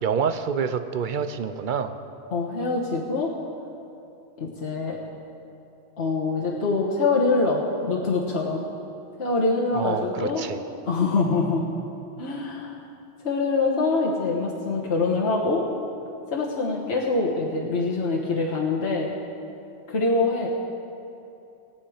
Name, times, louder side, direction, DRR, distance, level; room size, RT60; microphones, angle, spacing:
voice 1, 0.0-2.0 9.7-10.6, right 6 dB, 55° right, 10 dB, 0.7 m, -27 dB
voice 2, 2.3-3.3 4.4-5.0 6.0-8.6 9.2-10.4 10.8-11.7 12.2-12.8 13.2-15.6 16.3-19.1 19.9-20.5, left 3 dB, 65° left, -4 dB, 1.6 m, -24 dB
19.5 x 8.4 x 5.0 m, 2.7 s
omnidirectional pair, 1.2 m